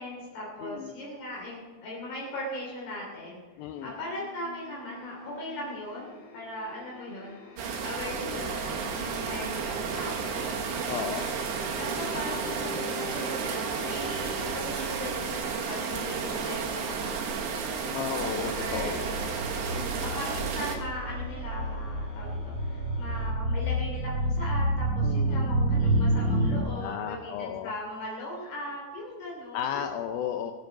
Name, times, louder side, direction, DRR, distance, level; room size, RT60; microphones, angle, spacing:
voice 1, 0.0-11.2 11.8-17.3 18.6-19.2 19.7-29.8, left 1 dB, 60° left, -3 dB, 4.7 m, -39 dB
voice 2, 0.6-0.9 3.6-4.0 8.2-8.5 10.9-11.3 17.9-19.0 25.0-25.5 26.7-27.7 29.5-30.5, left 9 dB, 85° left, 7 dB, 2.1 m, -34 dB
sound 1, 3.7-23.3, left 5 dB, 30° left, 3.5 m, -47 dB
sound 2, 7.6-20.8, right 5 dB, 80° right, 3.8 m, -32 dB
sound 3, 18.1-26.6, right 1 dB, 40° right, 1.1 m, -29 dB
21.5 x 7.8 x 6.1 m, 1.4 s
omnidirectional pair, 5.0 m